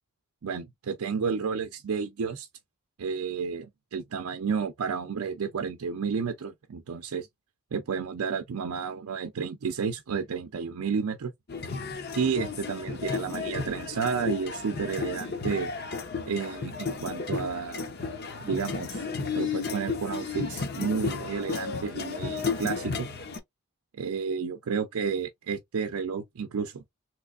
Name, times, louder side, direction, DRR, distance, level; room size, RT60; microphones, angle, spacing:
voice 1, 0.4-2.5 3.0-7.3 7.7-11.3 12.1-15.7 16.3-17.9 18.4-19.0 19.3-23.1 24.0-26.8, right 6 dB, 85° right, 0.5 m, -31 dB
sound 1, 11.5-23.4, left 5 dB, 45° left, 0.6 m, -33 dB
3.3 x 3.0 x 2.4 m
head